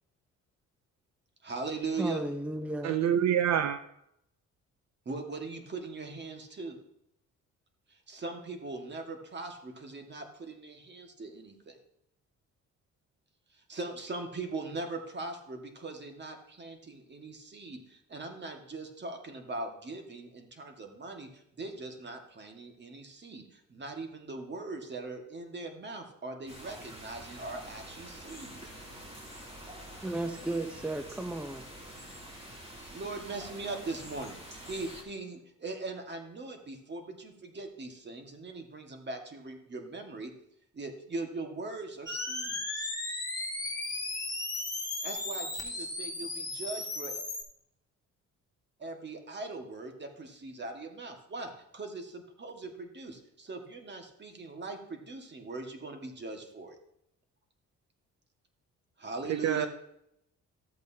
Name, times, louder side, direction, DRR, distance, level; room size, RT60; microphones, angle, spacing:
voice 1, 1.4-2.3 5.0-6.8 7.9-11.8 13.5-28.6 32.9-40.3 40.7-42.9 45.0-47.2 48.8-56.8 59.0-59.7, right 3 dB, 35° right, 1.7 m, -40 dB
voice 2, 2.0-3.0 30.0-31.7, right 1 dB, 5° right, 0.6 m, -34 dB
voice 3, 2.8-3.8 59.4-59.7, right 9 dB, 65° right, 0.5 m, -26 dB
sound 1, 26.5-35.0, equal, 20° right, 2.7 m, -47 dB
sound 2, 42.1-47.4, left 2 dB, 10° left, 2.6 m, -35 dB
13.5 x 8.1 x 2.8 m
cardioid pair, 90°, 30 cm